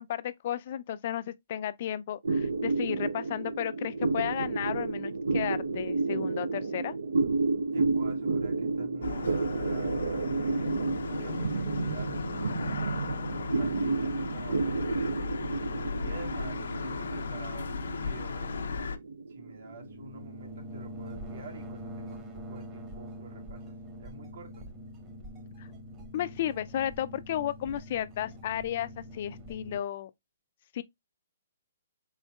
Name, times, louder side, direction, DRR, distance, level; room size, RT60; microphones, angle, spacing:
voice 1, 0.0-6.9 25.6-25.7 26.1-30.1 30.7-30.8, left 11 dB, 45° left, 0.3 m, -33 dB
sound 1, 2.2-21.0, right 3 dB, 90° right, 0.5 m, -31 dB
voice 2, 7.7-10.7 11.0-12.1 12.8-15.5 16.0-18.7 19.3-23.6 24.0-24.6, right 2 dB, 70° right, 1.7 m, -48 dB
sound 2, 9.0-19.0, left 5 dB, 85° left, 0.6 m, -36 dB
sound 3, 19.6-29.8, equal, 20° right, 0.9 m, -44 dB
4.3 x 3.8 x 2.2 m
hypercardioid pair, 160°, 0 cm